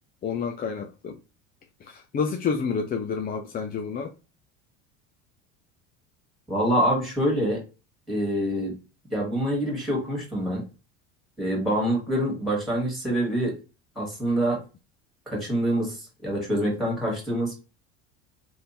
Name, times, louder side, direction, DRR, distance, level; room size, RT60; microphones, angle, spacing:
voice 1, 0.2-1.1 1.9-4.1, left 5 dB, 25° left, 0.4 m, -29 dB
voice 2, 6.5-7.6 8.1-8.8 9.1-10.6 11.4-13.6 14.0-14.6 15.3-17.6, equal, ahead, 1.7 m, -26 dB
3.5 x 2.6 x 2.8 m
hypercardioid pair, 80°, 39 cm